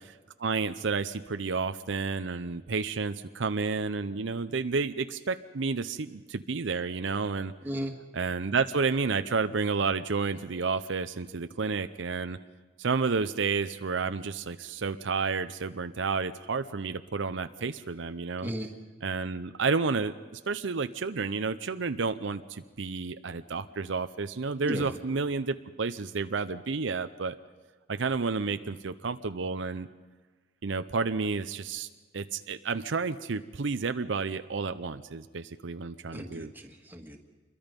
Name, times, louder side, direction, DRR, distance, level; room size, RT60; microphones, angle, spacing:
voice 1, 0.4-7.5 8.1-12.4 12.8-18.5 19.0-27.4 27.9-29.9 30.6-31.9 32.1-36.5, right 4 dB, 70° right, 10 dB, 0.7 m, -31 dB
voice 2, 7.6-7.9 18.4-18.7 24.6-24.9 36.1-37.2, equal, 10° right, 2 dB, 1.9 m, -35 dB
27.0 x 22.5 x 5.3 m, 1.4 s
head